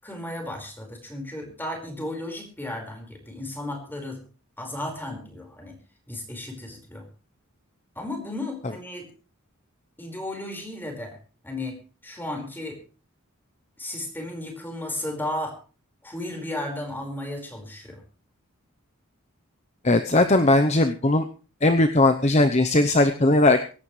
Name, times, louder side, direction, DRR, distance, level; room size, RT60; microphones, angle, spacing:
voice 1, 0.0-4.2 4.6-5.8 6.1-7.0 7.9-9.1 10.0-11.2 11.4-12.8 13.8-15.6 16.0-18.0, left 1 dB, 10° left, 2 dB, 5.0 m, -34 dB
voice 2, 19.8-21.2 21.6-23.6, left 2 dB, 30° left, 8 dB, 0.8 m, -19 dB
24.5 x 11.5 x 3.3 m, 0.37 s
head